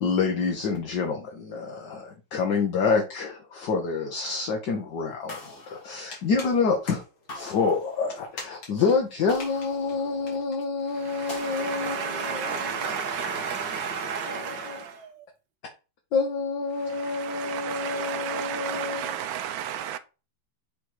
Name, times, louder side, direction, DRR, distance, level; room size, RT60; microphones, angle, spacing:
voice 1, 0.0-5.4 5.7-7.0 7.3-12.8 14.2-14.8 16.1-19.2, left 4 dB, 65° left, 1.6 m, -27 dB
sound 1, 5.3-11.5, left 3 dB, 85° left, 3.1 m, -47 dB
sound 2, 5.3-6.6 7.3-8.5 9.3-10.5 11.3-12.5, left 2 dB, 30° left, 1.3 m, -44 dB
voice 2, 10.9-15.2, right 6 dB, 65° right, 1.7 m, -32 dB
voice 3, 16.9-20.0, right 10 dB, 80° right, 1.5 m, -33 dB
7.2 x 3.3 x 4.7 m
omnidirectional pair, 2.2 m